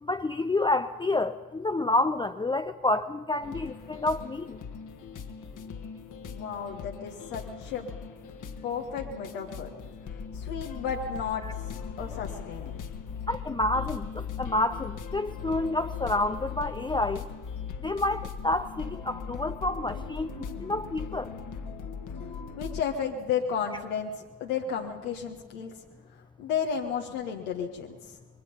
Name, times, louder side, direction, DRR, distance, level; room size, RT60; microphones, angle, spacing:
voice 1, 0.0-4.6 11.4-11.5 13.3-17.3 17.8-21.3 22.3-22.5, left 2 dB, 10° left, 8 dB, 0.6 m, -29 dB
sound 1, 3.4-22.8, left 6 dB, 45° left, 1.6 m, -39 dB
voice 2, 6.3-7.8 8.6-9.7 10.3-11.4 12.0-12.8 22.6-24.1 24.4-25.7 26.1-28.0, left 7 dB, 70° left, 1 dB, 1.6 m, -32 dB
25.0 x 21.5 x 5.5 m, 1.3 s
hypercardioid pair, 55°, 45 cm